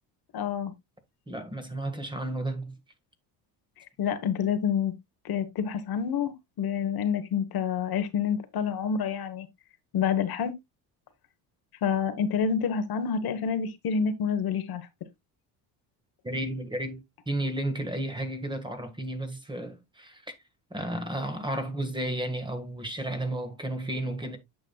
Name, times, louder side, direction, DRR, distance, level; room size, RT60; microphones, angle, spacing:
voice 1, 0.3-0.7 4.0-4.9 5.2-9.5 9.9-10.5 11.8-14.9, left 7 dB, 55° left, 1.2 m, -28 dB
voice 2, 1.3-2.8 16.2-20.3 20.7-24.4, right 1 dB, 10° right, 1.6 m, -33 dB
8.8 x 6.4 x 2.3 m
cardioid pair, 100°, 44 cm